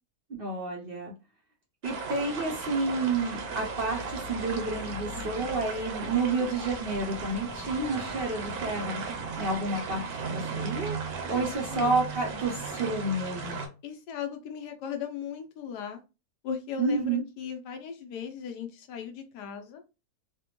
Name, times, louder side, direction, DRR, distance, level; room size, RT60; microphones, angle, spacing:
voice 1, 0.3-1.1 1.8-9.0 9.4-13.6 16.8-17.2, right 3 dB, 55° right, -1 dB, 0.6 m, -30 dB
sound 1, 1.8-13.7, right 4 dB, 70° right, 1.2 m, -36 dB
voice 2, 11.7-12.0 13.8-16.0 16.4-19.8, left 7 dB, 85° left, 5 dB, 1.3 m, -37 dB
3.3 x 2.2 x 2.8 m, 0.29 s
omnidirectional pair, 1.8 m